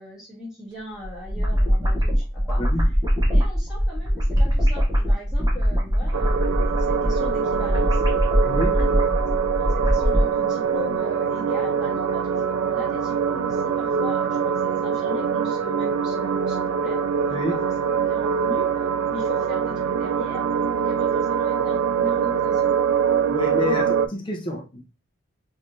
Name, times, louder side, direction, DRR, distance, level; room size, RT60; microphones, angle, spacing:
voice 1, 0.0-2.6 3.3-8.0 8.8-8.9 9.2-17.4 17.8-20.5 20.7-22.7 23.6-23.8, left 2 dB, 5° right, -7 dB, 1.5 m, -39 dB
sound 1, 1.0-10.3, equal, 20° right, 0.8 m, -22 dB
sound 2, 6.1-24.1, right 7 dB, 80° right, 0.3 m, -24 dB
voice 2, 8.4-8.8 17.3-17.6 23.3-24.9, left 1 dB, 25° left, 0 dB, 0.5 m, -28 dB
3.2 x 3.1 x 2.6 m, 0.31 s
head